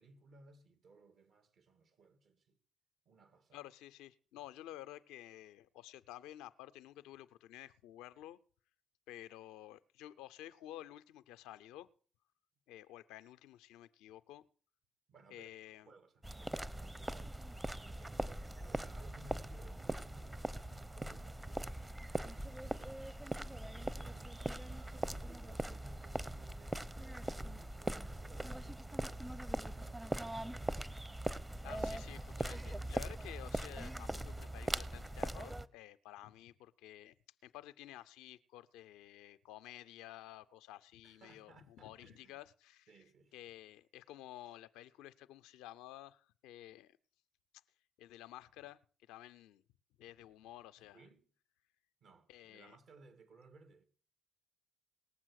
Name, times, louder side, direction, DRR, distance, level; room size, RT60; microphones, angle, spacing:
voice 1, 0.0-2.6 3.1-3.6 15.1-15.5 15.8-17.6 17.9-21.8 22.2-30.6 41.0-42.4 42.9-43.4 50.8-51.2 52.0-53.9, right 3 dB, 65° right, 2.2 m, -62 dB
voice 2, 3.5-8.4 9.1-11.9 12.7-14.5 15.3-15.9 31.6-37.1 37.4-42.9 43.3-47.0 48.0-48.8 49.1-49.6 50.0-51.0 52.3-52.8, left 13 dB, 80° left, 0.5 m, -52 dB
sound 1, 16.2-35.7, right 1 dB, 15° right, 0.9 m, -41 dB
19.0 x 7.4 x 6.4 m
hypercardioid pair, 45°, 0 cm